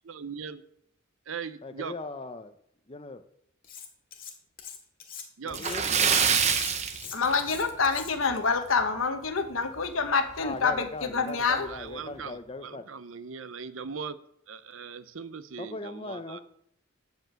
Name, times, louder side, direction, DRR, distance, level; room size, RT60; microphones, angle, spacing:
voice 1, 0.1-0.6 1.3-1.9 5.4-5.6 11.9-12.3 12.6-14.1 14.5-15.8 16.1-16.4, right 6 dB, 75° right, 13 dB, 0.7 m, -39 dB
voice 2, 1.6-2.5 2.9-3.2 5.4-5.9 10.4-12.8 15.6-16.4, left 2 dB, 30° left, 9 dB, 0.7 m, -39 dB
Cutlery silverware, 3.6-4.3 4.6-8.4, left 8 dB, 45° left, 1.9 m, -43 dB
Splash splatter, 5.5-7.9 8.2-8.4 8.8-8.9 10.3-10.4 10.8-10.9 11.5-11.7, right 6 dB, 35° right, 0.8 m, -25 dB
voice 3, 7.1-11.7, left 4 dB, 85° left, 7 dB, 1.2 m, -27 dB
9.2 x 5.4 x 7.5 m, 0.70 s
head